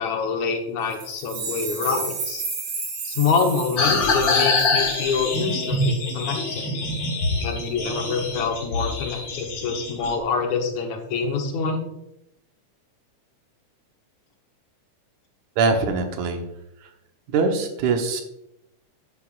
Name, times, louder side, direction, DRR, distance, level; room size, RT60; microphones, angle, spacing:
voice 1, 0.0-2.4 3.0-6.7 7.4-11.8, left 5 dB, 75° left, 3 dB, 2.4 m, -26 dB
sound 1, 0.9-5.4, right 4 dB, 60° right, 2.8 m, -33 dB
sound 2, 3.8-10.1, left 3 dB, 45° left, 2.0 m, -24 dB
voice 2, 15.6-16.4 16.8-16.9 17.3-18.2, right 4 dB, 80° right, 4 dB, 2.5 m, -22 dB
11.0 x 8.2 x 2.4 m, 0.84 s
omnidirectional pair, 3.4 m